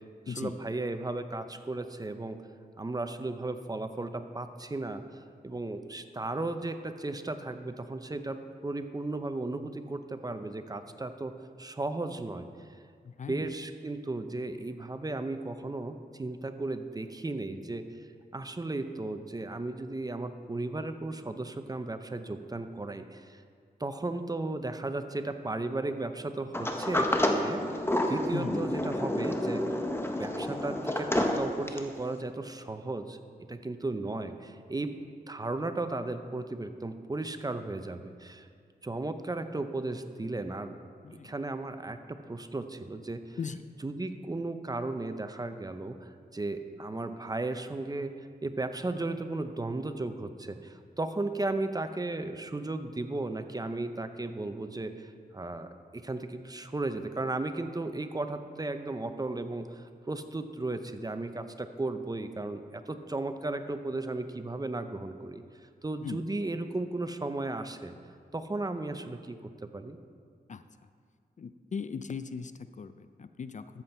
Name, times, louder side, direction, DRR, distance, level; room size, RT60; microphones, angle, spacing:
voice 1, 0.3-2.4 2.8-5.0 5.4-11.3 11.6-12.5 13.3-17.8 18.3-23.4 23.8-27.8 28.1-29.6 30.2-33.2 33.5-34.9 35.3-38.5 38.8-40.8 41.1-43.4 43.8-65.4 65.8-67.9 68.3-69.4 69.6-70.0, right 2 dB, 25° right, 9 dB, 0.7 m, -35 dB
voice 2, 13.0-13.5 28.3-28.7 41.0-41.3 43.4-43.6 66.0-66.2 70.5-70.6 71.4-73.8, left 6 dB, 50° left, 12 dB, 0.4 m, -38 dB
Sliding door, 26.5-32.0, left 1 dB, 15° left, 1.1 m, -29 dB
13.5 x 7.6 x 4.4 m, 2.1 s
cardioid pair, 70°, 17 cm